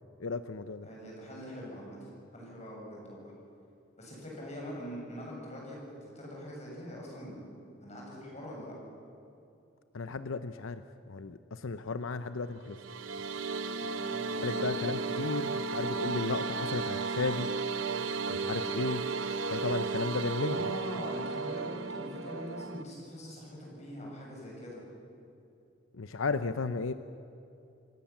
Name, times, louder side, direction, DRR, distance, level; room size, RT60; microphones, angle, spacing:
voice 1, 0.2-0.9 9.9-10.8 11.1-12.8 14.4-17.5 18.3-19.0 19.5-20.7 26.0-26.9, left 4 dB, 85° left, 11 dB, 0.7 m, -34 dB
voice 2, 0.8-3.3 4.0-7.5 7.8-8.7 13.8-14.7 20.4-24.8, equal, 35° left, -2 dB, 7.5 m, -43 dB
sound 1, 12.6-22.8, right 4 dB, 75° right, 1.0 m, -34 dB
27.5 x 17.5 x 7.3 m, 2.7 s
head